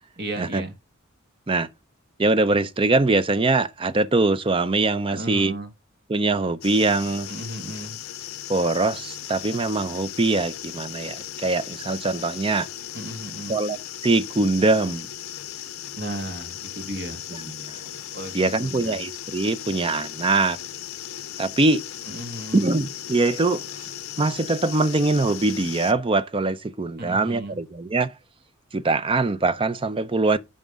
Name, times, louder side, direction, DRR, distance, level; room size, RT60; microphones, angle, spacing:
voice 1, 0.2-0.7 5.1-5.7 7.3-8.0 12.9-13.6 16.0-17.2 18.1-19.0 22.1-22.6 27.0-27.6, right 1 dB, 50° right, 1.9 m, -35 dB
voice 2, 2.2-5.5 6.1-7.3 8.5-12.7 13.5-13.8 14.0-15.1 17.5-17.8 18.3-20.6 21.4-21.8 22.5-23.8 24.2-28.1 28.7-30.4, right 3 dB, 25° right, 0.5 m, -22 dB
sound 1, 6.6-25.9, left 11 dB, 80° left, 0.6 m, -37 dB
9.1 x 5.2 x 3.5 m
head